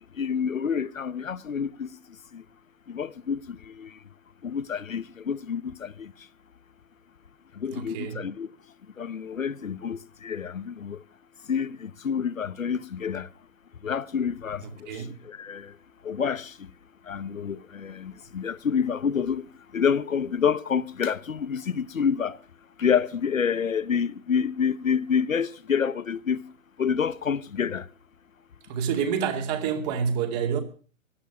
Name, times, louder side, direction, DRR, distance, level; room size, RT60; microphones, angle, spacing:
voice 1, 0.2-1.9 2.3-2.4 2.9-3.9 4.4-6.1 7.6-8.5 9.0-11.0 11.5-13.3 13.8-15.7 16.0-16.5 17.1-19.5 19.7-22.4 22.8-26.4 26.8-27.9, left 7 dB, 75° left, 1.0 m, -28 dB
voice 2, 7.7-8.2 14.6-15.2 28.7-30.6, right 7 dB, 30° right, 2.5 m, -28 dB
15.5 x 10.5 x 6.8 m
figure-of-eight pair, 130°, 40 cm